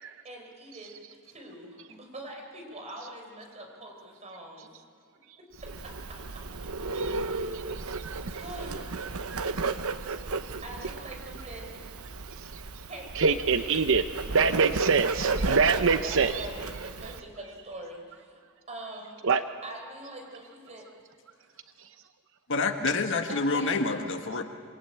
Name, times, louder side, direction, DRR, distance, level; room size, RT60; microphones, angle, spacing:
voice 1, 0.2-1.0 1.2-4.7 5.4-6.4 8.3-9.1 10.6-11.7 12.9-13.9 16.0-18.4 18.7-19.2 19.6-20.9 23.2-23.8, right 1 dB, 30° right, 1 dB, 5.1 m, -44 dB
Bird, 5.6-17.2, right 4 dB, 85° right, 1.1 m, -33 dB
voice 2, 7.5-8.2 9.3-9.4 13.2-14.0 14.3-16.4 19.2-19.4, right 5 dB, 65° right, 9 dB, 0.8 m, -25 dB
voice 3, 22.5-24.4, left 3 dB, 60° left, 6 dB, 1.6 m, -27 dB
27.0 x 22.0 x 8.9 m, 2.1 s
head